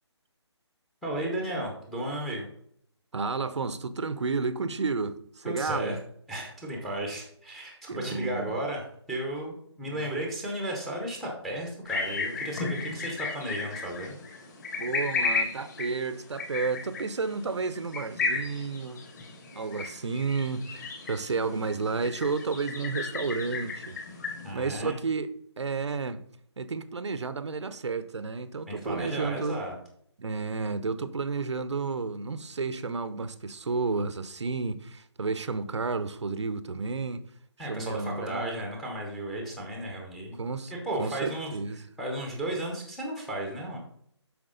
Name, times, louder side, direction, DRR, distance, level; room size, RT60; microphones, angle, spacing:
voice 1, 1.0-2.4 5.4-6.0 6.3-14.2 24.4-25.0 28.7-29.7 37.6-40.4 40.7-41.6 42.0-43.8, right 1 dB, ahead, 0.8 m, -34 dB
voice 2, 3.1-6.0 7.9-8.6 9.8-10.1 14.8-19.0 19.5-24.0 24.5-25.3 25.6-26.2 26.6-29.6 30.2-37.2 37.6-38.6 40.4-41.8, right 4 dB, 75° right, 0.7 m, -31 dB
sound 1, 11.9-24.5, left 4 dB, 35° left, 2.2 m, -34 dB
8.0 x 5.9 x 3.8 m
hypercardioid pair, 165°, 15 cm